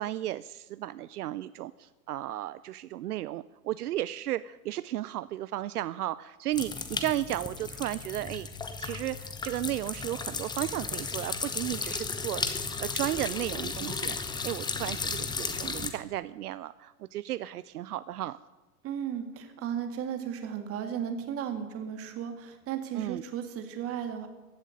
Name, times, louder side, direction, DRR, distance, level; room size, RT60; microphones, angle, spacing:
voice 1, 0.0-8.5 8.8-12.5 12.8-14.2 14.4-18.4 23.0-23.2, right 14 dB, 75° right, 16 dB, 0.6 m, -34 dB
sound 1, 6.5-15.9, left 4 dB, 10° left, 1.0 m, -35 dB
voice 2, 18.8-24.3, right 8 dB, 30° right, 7 dB, 2.1 m, -35 dB
15.5 x 7.3 x 9.4 m, 1.2 s
hypercardioid pair, 115°, 47 cm